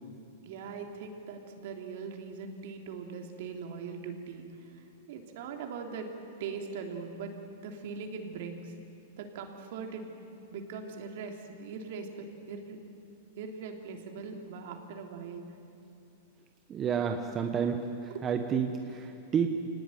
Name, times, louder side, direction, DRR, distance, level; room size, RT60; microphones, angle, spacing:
voice 1, 0.4-6.1 6.4-8.7 9.2-10.1 10.5-12.8 13.4-15.4 18.1-18.3, right 5 dB, 55° right, 3 dB, 3.2 m, -41 dB
voice 2, 16.7-19.5, right 7 dB, 20° right, 5 dB, 1.1 m, -30 dB
27.5 x 19.0 x 9.3 m, 2.7 s
supercardioid pair, 160°, 0 cm